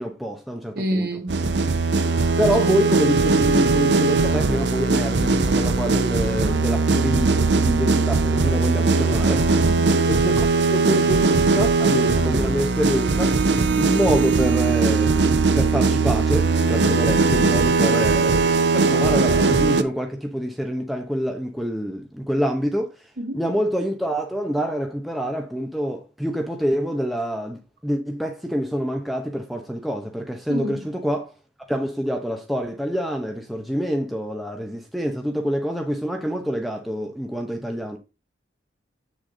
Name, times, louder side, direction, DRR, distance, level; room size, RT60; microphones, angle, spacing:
voice 1, 0.0-1.1 2.4-9.6 10.1-13.4 13.8-22.9 23.3-31.3 31.7-38.0, equal, ahead, 0.8 m, -26 dB
voice 2, 0.7-1.5 2.6-2.8 9.6-9.9 13.7-14.0 23.2-23.5 30.5-30.8, right 1 dB, 55° right, 2.5 m, -29 dB
sound 1, 1.3-19.8, right 3 dB, 75° right, 0.7 m, -19 dB
8.3 x 6.3 x 3.8 m
head